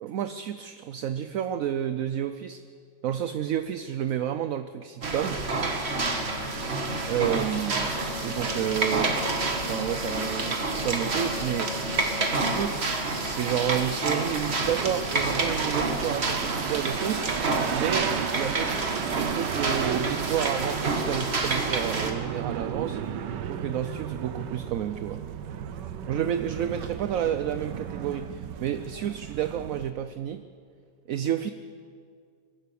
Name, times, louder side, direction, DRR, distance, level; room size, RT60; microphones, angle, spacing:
voice 1, 0.0-2.6 3.0-5.4 7.1-7.9 8.2-9.1 9.7-11.7 12.3-12.9 13.2-17.3 17.7-23.0 23.5-25.2 26.1-30.5 31.1-31.5, right 10 dB, 65° right, 10 dB, 0.9 m, -30 dB
sound 1, 5.0-22.1, right 3 dB, 40° right, 1.7 m, -28 dB
sound 2, 5.9-12.6, left 6 dB, 45° left, 0.4 m, -41 dB
sound 3, 14.6-29.9, right 8 dB, 80° right, 1.5 m, -35 dB
23.5 x 16.0 x 6.9 m, 2.2 s
omnidirectional pair, 1.9 m